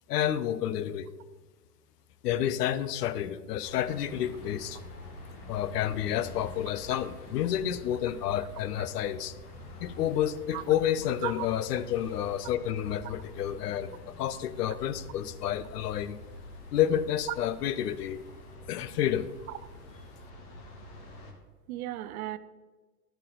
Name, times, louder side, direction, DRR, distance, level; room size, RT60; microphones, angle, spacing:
voice 1, 0.1-1.1 2.2-4.8 5.5-9.3 9.8-16.2 16.7-18.2 18.7-19.3, left 10 dB, 75° left, 15 dB, 0.7 m, -30 dB
sound 1, 3.6-21.3, left 2 dB, 15° left, 0.3 m, -47 dB
voice 2, 21.7-22.4, right 14 dB, 60° right, 13 dB, 0.6 m, -35 dB
11.5 x 3.8 x 5.8 m, 1.3 s
hypercardioid pair, 135°, 48 cm